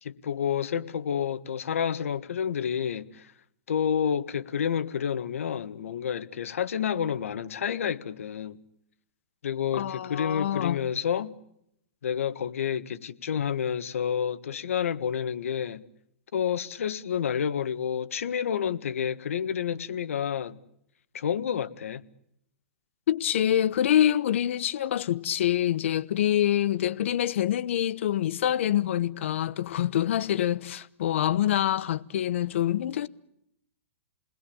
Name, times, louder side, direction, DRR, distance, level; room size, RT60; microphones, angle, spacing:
voice 1, 0.0-3.3 3.7-8.6 9.4-11.3 12.0-15.8 16.3-20.6 21.1-22.0, left 8 dB, 85° left, 1.6 m, -29 dB
voice 2, 9.7-10.8 23.1-33.1, left 11 dB, 65° left, 1.0 m, -26 dB
30.0 x 21.0 x 8.7 m
hypercardioid pair, 155°, 7 cm